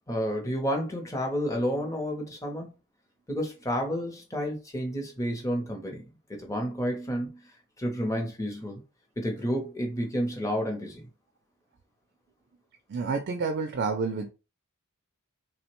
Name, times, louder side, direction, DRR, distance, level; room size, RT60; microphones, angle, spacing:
voice 1, 0.1-2.7 3.3-6.0 6.3-7.4 7.8-8.8 9.2-11.1, equal, 15° left, 0.6 m, -30 dB
voice 2, 12.9-14.3, right 4 dB, 45° right, 0.3 m, -29 dB
3.1 x 2.1 x 2.9 m
head